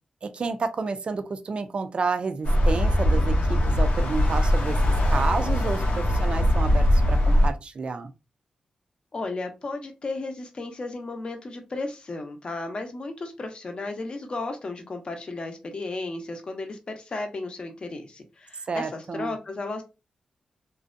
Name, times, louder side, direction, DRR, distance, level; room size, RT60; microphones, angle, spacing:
voice 1, 0.2-4.8 5.1-8.1 18.7-19.4, right 4 dB, 50° right, 9 dB, 0.4 m, -30 dB
sound 1, 2.4-7.5, left 1 dB, 80° left, 0.6 m, -21 dB
voice 2, 9.1-19.8, left 3 dB, 45° left, 5 dB, 0.6 m, -34 dB
2.6 x 2.1 x 2.4 m, 0.27 s
wide cardioid pair, 100°, 2 cm